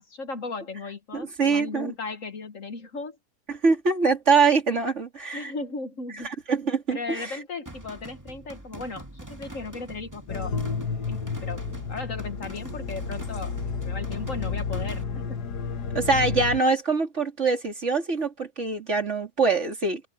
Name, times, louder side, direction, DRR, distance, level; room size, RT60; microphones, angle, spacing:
voice 1, 0.0-3.2 5.3-6.3 6.9-10.5 11.1-15.4, left 3 dB, 55° left, 1.7 m, -36 dB
voice 2, 1.1-1.9 3.5-5.5 6.1-7.4 15.9-20.0, right 4 dB, 45° right, 3.0 m, -24 dB
sound 1, 7.7-15.0, right 1 dB, 10° right, 1.9 m, -43 dB
sound 2, 10.3-16.6, left 5 dB, 75° left, 1.9 m, -31 dB
omnidirectional pair, 1.7 m